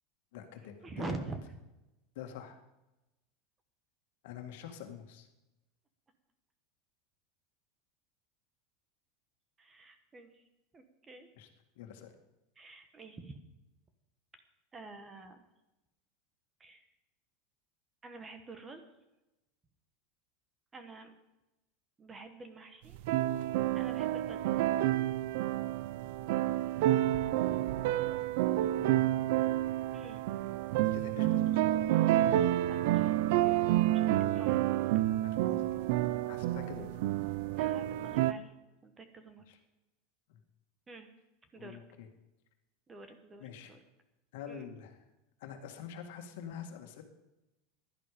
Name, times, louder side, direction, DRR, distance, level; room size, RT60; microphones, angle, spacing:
voice 1, 0.3-1.3 2.2-2.6 4.2-5.3 11.4-11.5 11.8-12.1 28.8-29.1 30.8-31.6 34.5-34.6 35.0-35.8 36.3-36.9 39.5-39.6 40.3-40.4 41.6-42.1 43.4-43.7 44.3-45.0 45.4-47.0, left 8 dB, 65° left, 5 dB, 1.9 m, -46 dB
voice 2, 0.8-1.4 9.6-10.4 10.7-11.3 12.6-13.4 14.7-15.4 16.6-16.8 18.0-18.8 20.7-21.1 22.0-23.0 23.7-24.6 29.9-30.2 32.7-33.6 33.9-34.1 34.3-34.6 37.6-38.5 38.8-39.4 40.9-41.1 41.5-41.8 42.9-43.8 44.5-44.6, right 3 dB, 15° right, 8 dB, 1.1 m, -47 dB
sound 1, 22.9-38.3, right 14 dB, 60° right, 0.5 m, -29 dB
16.0 x 11.5 x 5.1 m, 0.97 s
supercardioid pair, 170°, 0 cm